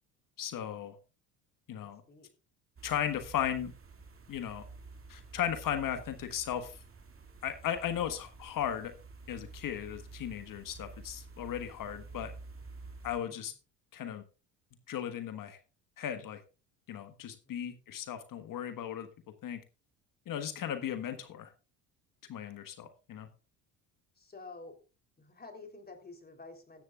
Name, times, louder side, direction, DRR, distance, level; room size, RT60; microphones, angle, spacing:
voice 1, 0.4-0.9 1.7-2.0 2.8-3.7 4.3-4.6 5.1-6.8 7.4-8.9 9.3-12.3 13.0-13.5 13.9-14.2 14.9-15.6 16.0-16.4 16.9-19.1 19.4-19.6 20.3-21.5 22.3-23.3, left 10 dB, 55° left, 8 dB, 1.5 m, -36 dB
voice 2, 1.7-2.3 12.0-12.3 17.5-17.7 20.4-20.7 24.2-24.8 25.2-26.8, left 3 dB, 25° left, 5 dB, 3.5 m, -50 dB
sound 1, 2.8-13.2, right 3 dB, 30° right, 2.4 m, -50 dB
14.5 x 11.0 x 2.4 m, 0.32 s
supercardioid pair, 75°, 40 cm